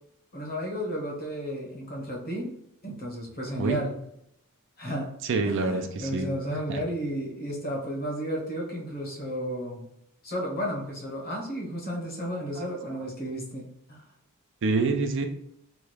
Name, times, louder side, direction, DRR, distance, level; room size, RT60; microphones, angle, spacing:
voice 1, 0.3-2.5 2.8-4.0 4.8-5.1 5.4-9.9 10.2-14.0, equal, 45° left, -2 dB, 0.9 m, -33 dB
voice 2, 5.2-6.3 6.7-6.8 12.6-12.7 14.6-15.3, right 3 dB, 60° right, 6 dB, 0.4 m, -26 dB
3.1 x 2.3 x 3.2 m, 0.76 s
head